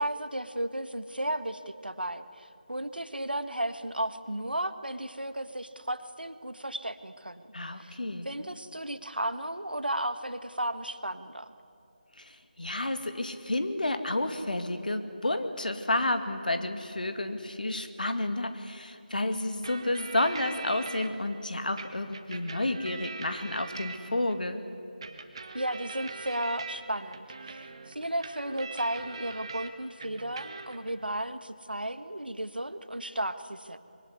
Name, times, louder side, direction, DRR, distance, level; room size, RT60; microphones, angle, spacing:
voice 1, 0.0-7.5 7.8-8.0 8.2-11.5 25.5-33.8, right 1 dB, 80° right, 11 dB, 1.7 m, -34 dB
voice 2, 7.5-8.3 12.2-24.6, left 2 dB, 65° left, 8 dB, 2.3 m, -31 dB
sound 1, 19.6-21.1 21.8-24.4 25.0-29.7 30.0-30.9, right 4 dB, 35° right, 1.7 m, -42 dB
24.5 x 22.5 x 9.8 m, 2.8 s
figure-of-eight pair, 160°, 5 cm